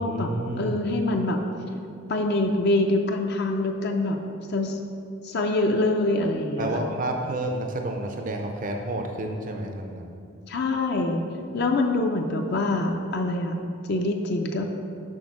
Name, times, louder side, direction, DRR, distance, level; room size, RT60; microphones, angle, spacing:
voice 1, 0.0-0.8 6.6-10.2, right 1 dB, 40° right, 3 dB, 0.5 m, -30 dB
voice 2, 0.6-1.4 2.1-4.8 5.2-6.7 10.5-11.2 11.5-13.5 13.8-14.6, left 2 dB, 50° left, 3 dB, 0.5 m, -25 dB
6.3 x 4.3 x 5.9 m, 2.6 s
head